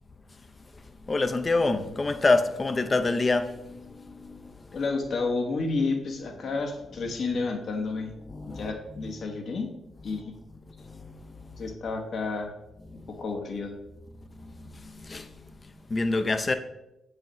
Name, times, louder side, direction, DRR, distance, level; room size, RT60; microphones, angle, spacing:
voice 1, 1.1-4.8 8.3-9.1 10.1-10.2 10.8-11.6 12.9-13.1 14.4-16.5, left 3 dB, 35° left, 0.6 m, -28 dB
voice 2, 4.7-8.1 8.5-9.7 10.0-10.3 11.6-12.5 13.1-13.7, left 3 dB, 65° left, 1.1 m, -30 dB
7.3 x 4.8 x 3.1 m
supercardioid pair, 50°, 0 cm